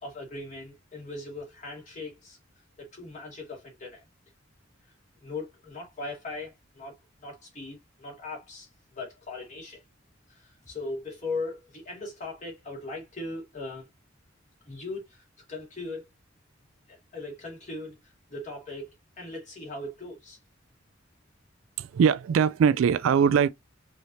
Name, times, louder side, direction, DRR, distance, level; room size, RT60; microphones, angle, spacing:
voice 1, 0.0-2.4 2.8-4.0 5.2-7.0 7.2-9.8 10.3-13.9 14.7-15.2 15.5-16.1 16.9-20.4, left 2 dB, 35° left, 2.3 m, -39 dB
voice 2, 21.8-23.5, right 7 dB, 80° right, 0.3 m, -21 dB
4.9 x 2.8 x 2.8 m
head